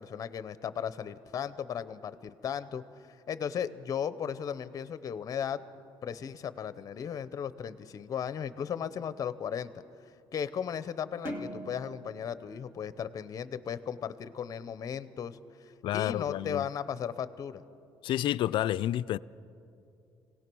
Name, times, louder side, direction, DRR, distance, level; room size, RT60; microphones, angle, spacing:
voice 1, 0.0-2.8 3.3-5.6 6.0-9.7 10.3-15.4 15.9-17.6, left 8 dB, 40° left, 0.7 m, -36 dB
sound 1, 11.2-13.8, equal, 25° right, 1.7 m, -42 dB
voice 2, 15.8-16.7 18.0-19.2, left 13 dB, 60° left, 0.4 m, -29 dB
25.5 x 17.5 x 6.2 m
cardioid pair, 140°, 9 cm